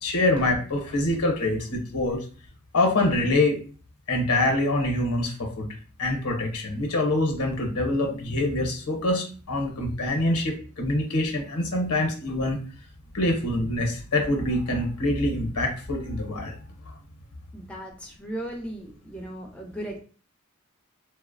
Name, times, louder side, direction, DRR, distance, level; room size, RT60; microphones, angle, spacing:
voice 1, 0.0-2.2 2.7-3.6 4.1-5.7 6.0-12.6 13.1-16.5, left 1 dB, 85° left, 3 dB, 0.7 m, -25 dB
voice 2, 17.5-20.0, right 1 dB, 5° left, 1 dB, 0.4 m, -36 dB
2.5 x 2.0 x 2.5 m, 0.39 s
head